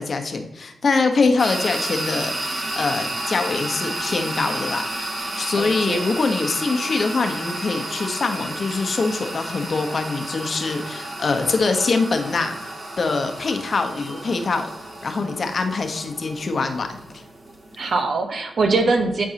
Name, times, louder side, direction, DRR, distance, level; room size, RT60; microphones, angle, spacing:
voice 1, 0.0-17.0, left 4 dB, 55° left, 6 dB, 1.1 m, -24 dB
sound 1, 1.4-18.0, right 1 dB, 45° right, 2.0 m, -31 dB
voice 2, 5.6-6.1 17.8-19.3, right 3 dB, 65° right, 4 dB, 1.2 m, -22 dB
10.0 x 4.6 x 2.9 m, 0.93 s
cardioid pair, 55°, 0 cm